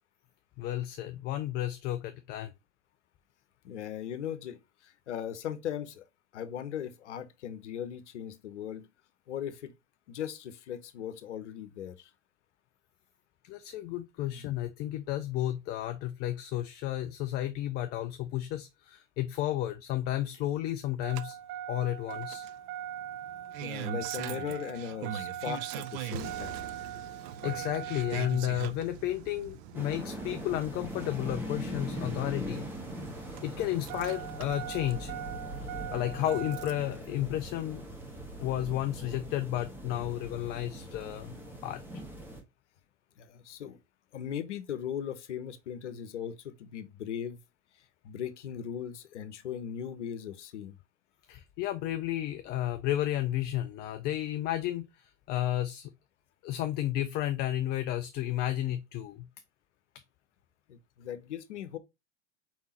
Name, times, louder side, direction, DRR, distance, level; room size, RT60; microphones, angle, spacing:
voice 1, 0.6-2.5 13.5-21.4 21.7-22.5 27.4-32.7 33.2-35.1 35.6-37.8 38.4-41.4 41.6-41.8 51.3-55.9 56.4-59.3, left 13 dB, 30° left, 0.4 m, -32 dB
voice 2, 3.6-6.1 6.3-8.9 9.3-9.7 10.1-12.1 14.2-14.4 23.6-26.6 43.2-43.8 44.1-47.4 48.0-50.7 60.7-61.8, left 9 dB, 70° left, 0.9 m, -38 dB
Engine starting, 21.0-36.9 38.2-38.3, right 10 dB, 35° right, 0.5 m, -40 dB
sound 1, 29.7-42.4, equal, 5° right, 1.2 m, -41 dB
4.7 x 3.6 x 2.8 m
hypercardioid pair, 95°, 36 cm